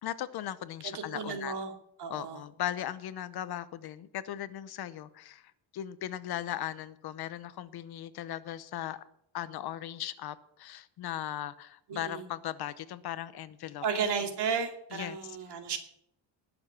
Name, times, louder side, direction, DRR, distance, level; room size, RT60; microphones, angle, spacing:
voice 1, 0.0-1.6 2.1-9.0 9.3-13.8 14.9-15.4, left 12 dB, 55° left, 14 dB, 0.8 m, -38 dB
voice 2, 0.8-1.7 2.0-2.4 11.9-12.3 13.8-15.8, right 6 dB, 60° right, 5 dB, 2.5 m, -33 dB
19.5 x 7.2 x 5.9 m, 0.72 s
cardioid pair, 175°, 47 cm